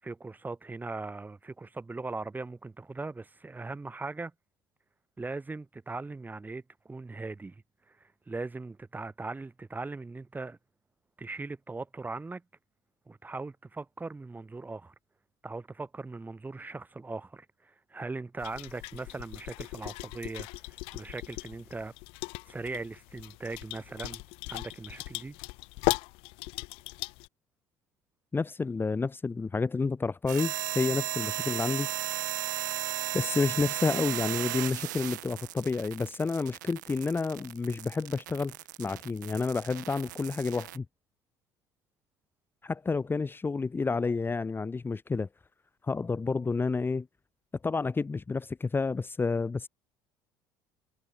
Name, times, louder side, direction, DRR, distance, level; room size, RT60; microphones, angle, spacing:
voice 1, 0.0-4.3 5.2-10.6 11.2-12.4 13.1-14.9 15.4-21.9 22.5-24.2 24.5-25.4, right 3 dB, 20° right, 4.9 m, -39 dB
sound 1, 18.4-27.3, left 26 dB, 70° left, 0.7 m, -37 dB
voice 2, 28.3-31.9 33.1-38.5 38.8-40.8 42.6-45.3 45.8-47.1 47.6-49.7, left 4 dB, 20° left, 1.6 m, -30 dB
sound 2, 30.3-40.8, right 16 dB, 90° right, 1.7 m, -35 dB
hypercardioid pair, 75°, 10 cm